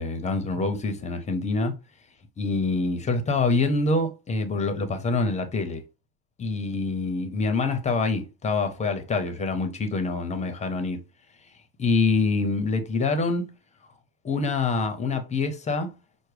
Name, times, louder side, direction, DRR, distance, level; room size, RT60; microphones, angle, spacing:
voice 1, 0.0-1.7 2.4-5.8 6.4-11.0 11.8-13.5 14.2-16.0, left 3 dB, 25° left, 0.7 m, -25 dB
5.8 x 2.1 x 3.2 m
cardioid pair, 130°, 30 cm